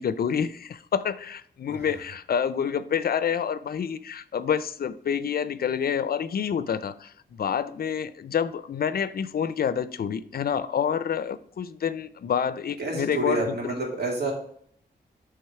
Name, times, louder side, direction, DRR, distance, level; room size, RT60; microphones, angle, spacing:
voice 1, 0.0-13.7, left 7 dB, 60° left, 0.5 m, -28 dB
voice 2, 12.8-14.3, right 2 dB, 65° right, 2.5 m, -29 dB
8.6 x 3.5 x 4.7 m
cardioid pair, 80°, 18 cm